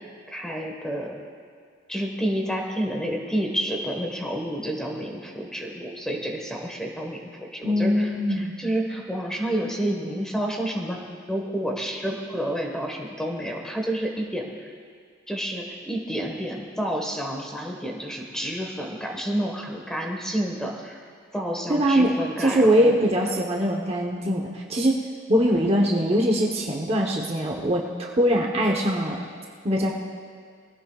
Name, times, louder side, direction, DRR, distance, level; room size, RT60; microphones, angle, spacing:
voice 1, 0.3-1.2 1.9-11.0 11.3-14.7 15.3-21.0 21.3-23.0, right 1 dB, 5° left, 0 dB, 1.4 m, -29 dB
voice 2, 7.6-8.5 21.7-22.1 22.4-25.0 25.3-29.2 29.6-29.9, equal, 30° right, 0 dB, 1.0 m, -22 dB
22.5 x 16.0 x 2.4 m, 2.1 s
head